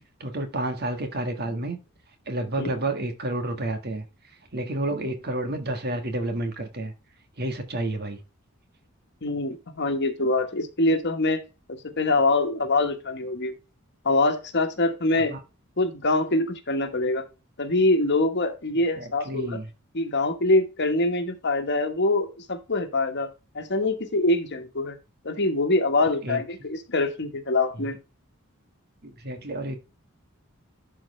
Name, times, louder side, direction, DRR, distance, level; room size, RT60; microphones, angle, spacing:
voice 1, 0.2-1.8 2.3-4.0 4.5-6.9 7.4-8.2 15.1-15.4 19.0-19.7 26.0-26.4 29.0-29.8, right 1 dB, 50° right, 1.7 m, -30 dB
voice 2, 9.2-11.4 11.7-13.5 14.0-15.4 15.8-17.2 17.6-19.6 19.9-23.3 23.5-25.0 25.2-28.0, left 2 dB, 55° left, 1.4 m, -24 dB
12.0 x 4.6 x 3.3 m
head